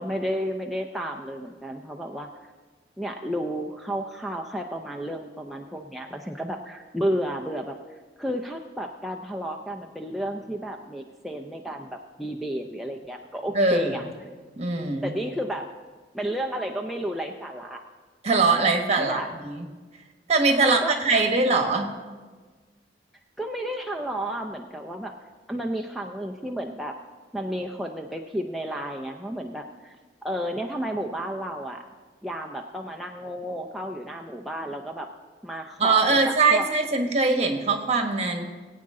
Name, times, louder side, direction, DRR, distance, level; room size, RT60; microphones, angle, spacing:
voice 1, 0.0-2.5 3.0-7.7 8.2-14.0 15.0-15.7 16.1-17.8 19.0-19.3 20.6-20.9 23.4-25.1 25.5-26.9 27.3-30.0 30.2-31.8 32.2-35.1 35.4-36.7, equal, ahead, 1 dB, 0.5 m, -32 dB
voice 2, 13.5-14.1 14.6-15.1 18.2-19.6 20.3-21.9 35.8-38.4, right 3 dB, 40° right, 4 dB, 1.4 m, -22 dB
19.5 x 8.7 x 3.7 m, 1.4 s
head